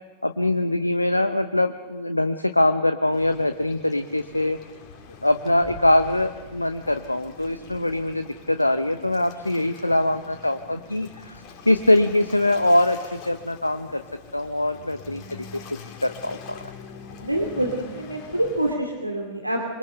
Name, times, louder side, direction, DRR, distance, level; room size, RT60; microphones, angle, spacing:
voice 1, 0.2-4.6 5.2-14.0 14.3-15.2 16.0-16.6, left 1 dB, 85° left, 9 dB, 0.9 m, -23 dB
Waves surf, 3.1-18.7, left 4 dB, 40° left, 4.7 m, -44 dB
voice 2, 17.2-19.8, right 1 dB, 85° right, 1 dB, 2.6 m, -26 dB
26.0 x 23.5 x 6.8 m, 1.3 s
figure-of-eight pair, 90°, 0 cm